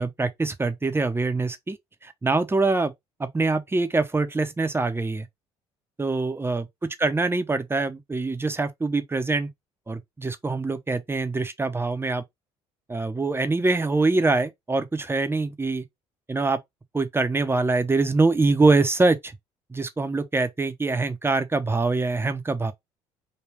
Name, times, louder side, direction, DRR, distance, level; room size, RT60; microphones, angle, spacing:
voice 1, 0.0-1.8 2.0-2.9 3.2-5.3 6.0-6.7 7.0-9.5 9.9-12.2 12.9-15.8 16.3-16.6 16.9-19.3 19.7-22.7, right 3 dB, 15° right, 0.8 m, -24 dB
3.4 x 2.2 x 3.3 m
hypercardioid pair, 65°, 14 cm